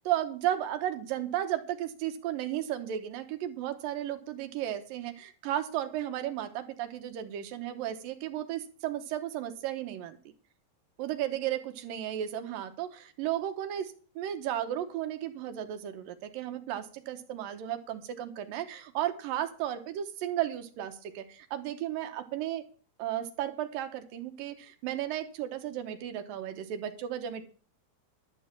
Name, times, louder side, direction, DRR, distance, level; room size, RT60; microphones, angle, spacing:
voice 1, 0.1-10.2 11.0-22.7 23.0-27.4, right 12 dB, 75° right, 7 dB, 2.4 m, -34 dB
12.0 x 6.3 x 7.3 m, 0.41 s
omnidirectional pair, 4.6 m